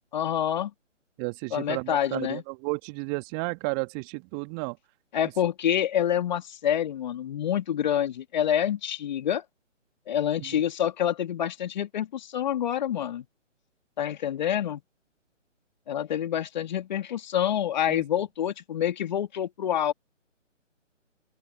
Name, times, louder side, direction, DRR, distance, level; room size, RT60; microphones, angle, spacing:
voice 1, 0.1-0.7 1.5-2.4 5.1-9.4 10.1-13.2 14.0-14.8 15.9-19.9, left 10 dB, 35° left, 2.5 m, -27 dB
voice 2, 1.2-4.8 17.9-18.0, right 35 dB, 20° right, 2.3 m, -32 dB
open air
figure-of-eight pair, 140°, 38 cm